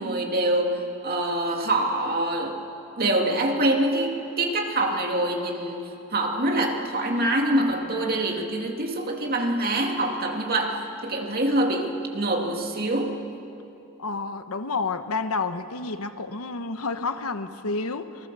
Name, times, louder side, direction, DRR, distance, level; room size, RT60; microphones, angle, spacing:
voice 1, 0.0-2.6 3.0-13.2, right 1 dB, 45° right, 2 dB, 2.2 m, -25 dB
voice 2, 14.0-18.3, left 3 dB, 75° left, 10 dB, 1.1 m, -30 dB
27.0 x 20.0 x 6.8 m, 2.8 s
head